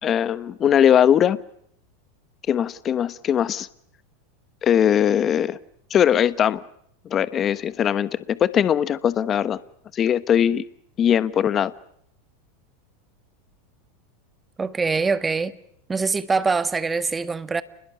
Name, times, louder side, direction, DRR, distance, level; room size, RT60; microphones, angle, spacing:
voice 1, 0.0-1.4 2.5-3.7 4.6-5.6 5.9-6.6 7.1-9.6 9.9-10.6 11.0-11.7, left 9 dB, 35° left, 1.1 m, -20 dB
voice 2, 14.6-15.5 15.9-17.6, right 4 dB, 15° right, 1.6 m, -23 dB
29.0 x 21.0 x 9.7 m
hypercardioid pair, 100°, 0 cm